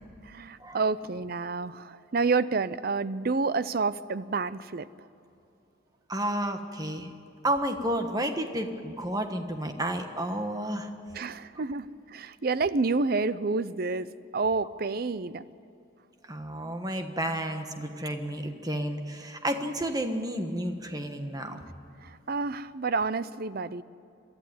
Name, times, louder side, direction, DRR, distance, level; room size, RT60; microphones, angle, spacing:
voice 1, 0.2-4.9 11.1-15.5 22.0-23.8, right 4 dB, 50° right, 16 dB, 0.6 m, -29 dB
voice 2, 6.1-7.1 7.4-10.9 16.3-21.6, right 1 dB, 20° right, 6 dB, 1.4 m, -31 dB
23.0 x 13.5 x 9.5 m, 2.8 s
head